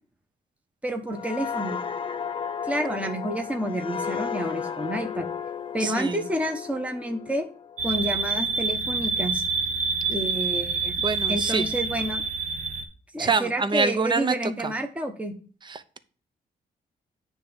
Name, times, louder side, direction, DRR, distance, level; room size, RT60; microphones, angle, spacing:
voice 1, 0.8-1.8 2.6-5.3 5.7-7.5 7.8-9.4 10.1-10.9 11.3-12.2 13.1-15.3, right 1 dB, 10° right, 4 dB, 1.1 m, -29 dB
sound 1, 1.1-8.6 9.0-9.2, left 7 dB, 30° left, 0.4 m, -34 dB
voice 2, 5.8-6.3 11.0-11.7 13.2-14.7 15.6-16.0, right 4 dB, 30° right, 12 dB, 0.7 m, -26 dB
sound 2, 7.8-12.8, right 4 dB, 50° right, 1.2 m, -27 dB
9.3 x 3.5 x 6.7 m, 0.41 s
cardioid pair, 120°, 16 cm